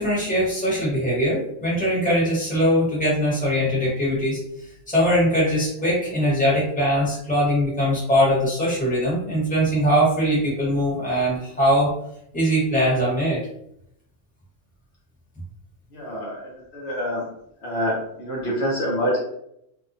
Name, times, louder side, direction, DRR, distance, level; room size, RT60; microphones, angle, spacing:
voice 1, 0.0-4.4 4.9-11.9 12.3-13.4, equal, 5° left, -8 dB, 1.1 m, -21 dB
voice 2, 15.9-17.3 17.6-19.2, equal, 60° left, -4 dB, 1.0 m, -26 dB
2.8 x 2.1 x 2.6 m, 0.74 s
omnidirectional pair, 1.3 m